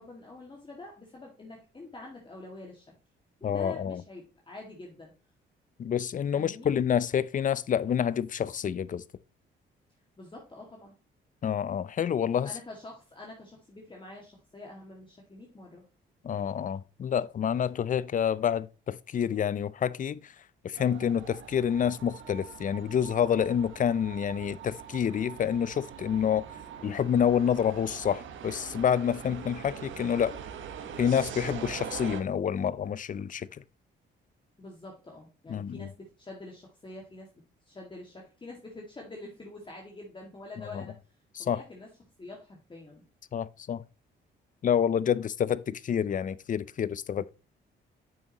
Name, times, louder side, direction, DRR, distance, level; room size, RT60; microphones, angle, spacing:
voice 1, 0.0-2.9 3.4-5.1 6.3-6.7 10.2-10.9 12.4-15.8 34.6-40.9 41.4-41.9 42.2-43.0, left 2 dB, 25° left, 2.1 m, -46 dB
voice 2, 3.4-4.0 5.8-9.0 11.4-12.5 16.2-20.2 20.6-26.4 26.8-30.4 31.0-33.5 35.5-35.9 40.7-40.8 41.5-41.6 43.3-43.8 44.6-47.3, left 8 dB, 40° left, 0.5 m, -28 dB
sound 1, 20.7-32.2, right 8 dB, 75° right, 1.3 m, -43 dB
8.8 x 6.4 x 3.0 m
cardioid pair, 90°, 20 cm